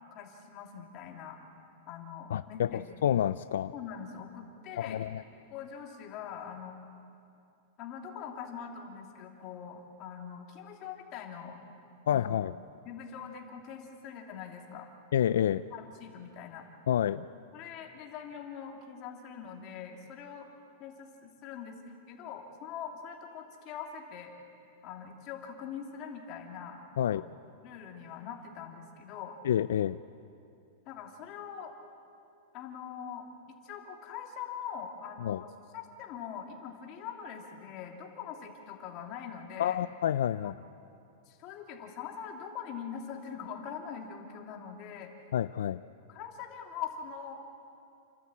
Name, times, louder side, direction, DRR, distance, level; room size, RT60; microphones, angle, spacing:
voice 1, 0.1-1.4 1.9-3.1 3.7-5.1 5.5-6.8 7.8-11.6 12.1-12.4 12.8-14.9 15.7-16.6 17.5-20.5 20.8-21.8 22.1-24.3 24.8-26.8 27.1-27.3 27.6-29.4 30.9-31.7 32.5-39.8 40.4-40.7 41.3-45.1 46.1-47.4, left 7 dB, 35° left, 1 dB, 2.8 m, -43 dB
voice 2, 2.3-3.7 4.8-5.2 12.1-12.5 15.1-15.6 16.9-17.3 27.0-27.2 29.4-30.0 35.2-35.4 39.6-40.5 45.3-45.8, left 10 dB, 85° left, 14 dB, 0.4 m, -28 dB
29.5 x 13.0 x 8.6 m, 2.6 s
supercardioid pair, 160°, 0 cm